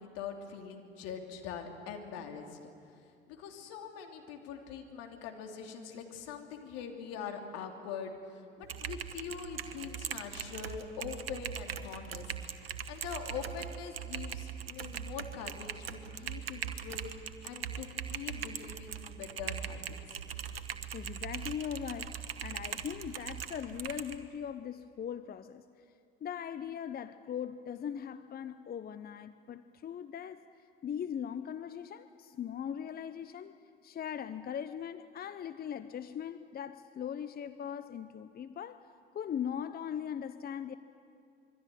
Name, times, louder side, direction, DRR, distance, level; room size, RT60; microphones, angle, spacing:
voice 1, 0.0-2.6 3.3-12.3 12.9-20.2, left 7 dB, 60° left, 3 dB, 3.1 m, -43 dB
Typing, 8.6-24.2, right 8 dB, 80° right, 1.1 m, -41 dB
voice 2, 20.9-25.6 26.2-30.4 30.8-33.6 33.8-38.9 39.1-40.8, left 8 dB, 30° left, 12 dB, 0.8 m, -40 dB
26.0 x 23.0 x 7.7 m, 2.4 s
figure-of-eight pair, 60°, 29 cm